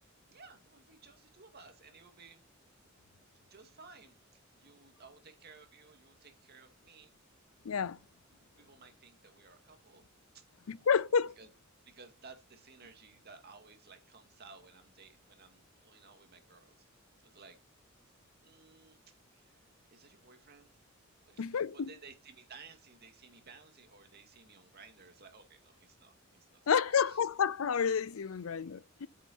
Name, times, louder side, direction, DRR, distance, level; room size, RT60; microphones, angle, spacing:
voice 1, 0.3-2.4 3.5-7.1 8.6-10.1 10.3-10.9 11.2-11.5 11.9-17.6 18.4-20.8 21.2-27.2, right 4 dB, 50° right, 2.3 m, -57 dB
voice 2, 7.6-8.0 10.7-11.3 21.4-21.9 26.7-29.1, left 7 dB, 85° left, 0.5 m, -30 dB
8.7 x 6.9 x 4.5 m
head